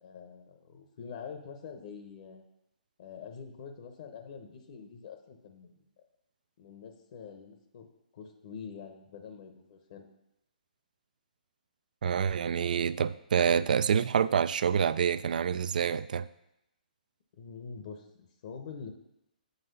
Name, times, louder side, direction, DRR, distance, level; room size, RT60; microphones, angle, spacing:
voice 1, 0.0-2.4 3.0-5.8 6.6-7.9 8.1-10.1 17.4-18.9, left 6 dB, 50° left, 0.9 m, -45 dB
voice 2, 12.0-16.3, right 7 dB, 65° right, 0.3 m, -27 dB
7.6 x 4.1 x 5.4 m
hypercardioid pair, 135°, 5 cm